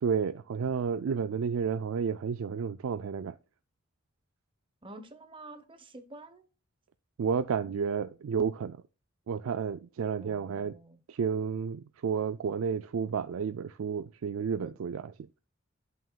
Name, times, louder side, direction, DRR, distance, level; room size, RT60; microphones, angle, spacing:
voice 1, 0.0-3.4 7.2-8.8 9.3-10.8 11.1-15.1, right 6 dB, 85° right, 0.4 m, -31 dB
voice 2, 4.8-6.5 10.2-11.0 14.6-14.8, right 2 dB, 25° right, 1.0 m, -48 dB
11.0 x 6.1 x 2.3 m
head